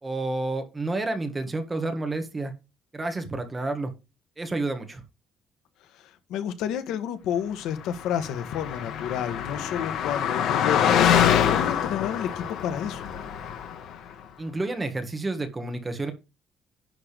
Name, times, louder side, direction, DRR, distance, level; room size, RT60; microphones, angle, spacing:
voice 1, 0.0-2.5 2.9-3.9 4.4-5.0 14.4-16.1, right 2 dB, 15° right, 1.7 m, -30 dB
voice 2, 5.9-13.1, left 9 dB, 90° left, 1.4 m, -31 dB
Car passing by, 8.0-13.9, left 9 dB, 70° left, 1.8 m, -25 dB
11.0 x 3.9 x 6.8 m
cardioid pair, 155°, 0 cm